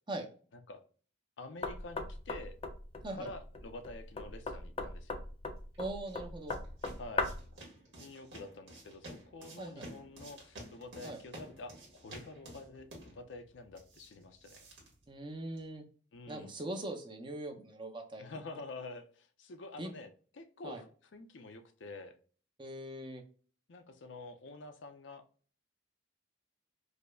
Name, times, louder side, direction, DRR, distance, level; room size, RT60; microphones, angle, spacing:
voice 1, 1.4-2.6 3.1-5.2 7.0-7.3 8.0-14.7 16.1-16.5 18.2-20.9 21.1-22.1 23.7-25.2, left 2 dB, 80° left, 7 dB, 0.5 m, -48 dB
Knock, 1.6-7.5, left 3 dB, 30° left, 0.4 m, -39 dB
sound 1, 5.7-15.8, right 1 dB, 75° right, 1.5 m, -52 dB
voice 2, 5.8-6.6 9.6-9.9 11.0-11.2 15.1-15.8 16.3-18.2 19.8-19.9 20.6-20.8 22.6-23.2, right 1 dB, 25° right, 4 dB, 0.6 m, -41 dB
4.9 x 2.1 x 2.3 m, 0.41 s
head